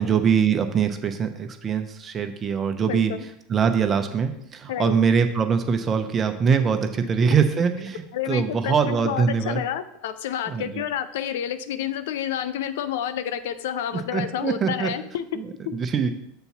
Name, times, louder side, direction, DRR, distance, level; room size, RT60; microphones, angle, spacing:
voice 1, 0.0-3.1 3.5-9.6 10.5-10.8 13.9-14.9 15.3-16.1, right 6 dB, 30° right, 7 dB, 0.8 m, -23 dB
voice 2, 2.9-3.2 4.7-5.0 8.1-15.3 15.6-15.7, left 10 dB, 70° left, 11 dB, 0.5 m, -29 dB
6.8 x 4.2 x 5.8 m, 0.77 s
hypercardioid pair, 90°, 0 cm